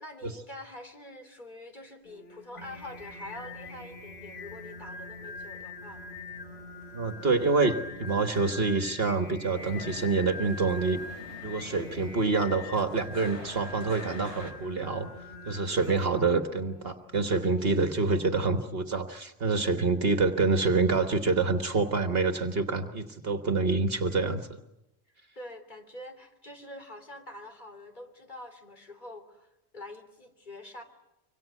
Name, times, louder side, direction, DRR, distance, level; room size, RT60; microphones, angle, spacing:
voice 1, 0.0-6.0 15.9-16.1 25.4-30.8, left 1 dB, 45° left, 6 dB, 3.4 m, -45 dB
Singing, 2.1-18.3, left 3 dB, 70° left, 1.6 m, -45 dB
sound 1, 2.6-15.9, right 1 dB, 35° right, 1.8 m, -49 dB
voice 2, 6.9-11.0 11.4-15.1 15.5-24.6, right 4 dB, 60° right, 7 dB, 1.5 m, -27 dB
sound 2, 9.5-14.5, left 1 dB, 85° left, 4.2 m, -46 dB
26.0 x 25.0 x 8.2 m, 0.91 s
omnidirectional pair, 1.1 m